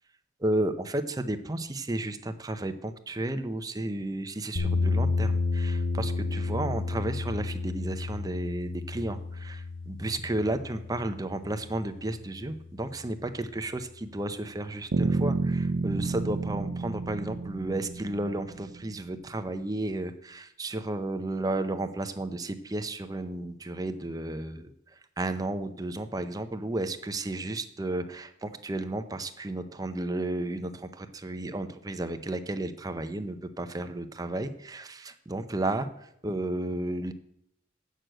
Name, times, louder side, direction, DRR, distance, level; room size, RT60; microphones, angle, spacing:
voice 1, 0.4-37.1, right 2 dB, 20° right, 9 dB, 0.6 m, -33 dB
sound 1, 4.6-12.6, left 3 dB, 85° left, 1.7 m, -31 dB
sound 2, 14.9-18.9, right 3 dB, 75° right, 0.5 m, -30 dB
7.8 x 6.6 x 7.7 m, 0.76 s
head